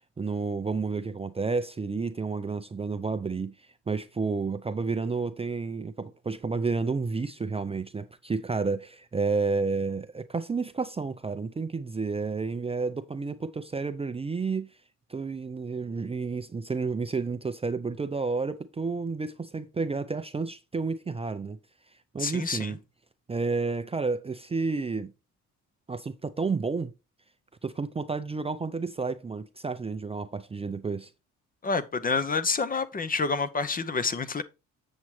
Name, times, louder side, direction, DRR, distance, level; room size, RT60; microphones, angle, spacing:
voice 1, 0.2-3.5 3.9-14.7 15.1-21.6 22.1-22.8 23.3-25.1 25.9-26.9 27.6-31.1, right 4 dB, 20° right, 0.5 m, -31 dB
voice 2, 22.2-22.7 31.6-34.4, left 4 dB, 30° left, 0.7 m, -28 dB
7.5 x 7.2 x 3.2 m
cardioid pair, 90°, 30 cm